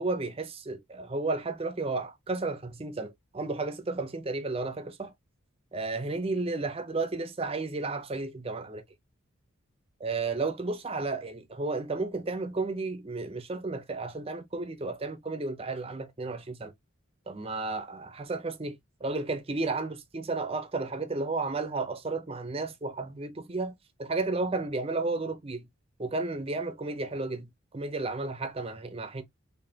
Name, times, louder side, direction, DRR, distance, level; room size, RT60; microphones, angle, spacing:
voice 1, 0.0-5.1 5.7-8.8 10.0-16.7 17.3-25.6 26.0-29.2, right 3 dB, 25° right, 0.5 m, -33 dB
4.0 x 3.4 x 2.7 m
head